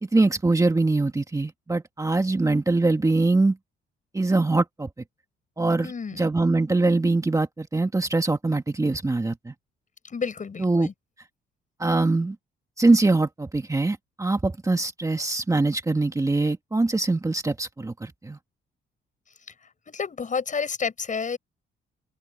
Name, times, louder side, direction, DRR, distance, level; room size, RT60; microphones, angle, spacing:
voice 1, 0.1-3.6 4.1-4.9 5.6-5.9 6.2-9.5 10.6-10.9 11.8-12.4 12.8-18.4, right 2 dB, 15° right, 1.8 m, -23 dB
voice 2, 5.8-6.2 10.0-10.9 19.9-21.4, left 5 dB, 40° left, 7.2 m, -30 dB
open air
cardioid pair, 90°, 20 cm